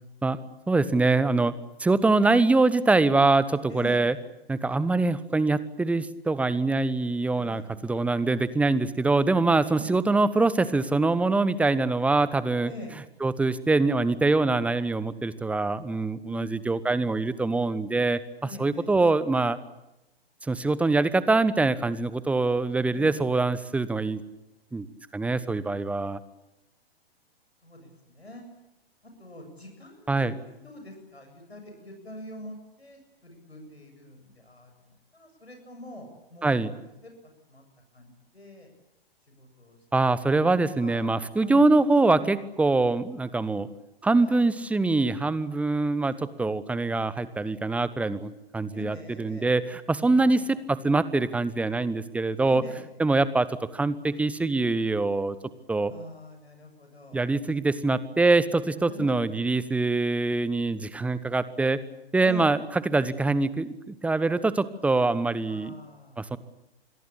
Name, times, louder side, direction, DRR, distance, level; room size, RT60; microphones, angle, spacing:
voice 1, 0.7-1.5 1.8-4.1 4.5-12.7 13.2-18.2 18.6-19.6 20.4-24.2 24.7-24.9 25.1-26.2 30.1-30.3 36.4-36.7 39.9-43.7 44.0-50.4 50.7-52.6 53.0-53.5 53.7-55.4 55.7-55.9 57.1-61.8 62.1-62.6 62.9-65.7 66.2-66.4, right 3 dB, 5° right, 16 dB, 1.0 m, -24 dB
voice 2, 3.7-4.1 7.3-8.5 9.7-9.9 12.6-12.9 16.3-16.7 18.4-18.9 22.9-23.2 27.6-28.5 29.0-30.1 30.4-36.7 37.0-37.1 37.5-37.6 37.9-38.7 39.3-39.8 40.4-41.1 41.4-41.7 44.1-44.4 48.7-49.5 50.0-50.6 52.5-52.9 55.9-57.2 58.9-59.2 62.2-62.5 65.4-66.3, left 1 dB, 80° left, 4 dB, 7.6 m, -45 dB
27.0 x 22.0 x 8.6 m, 0.91 s
figure-of-eight pair, 115°, 31 cm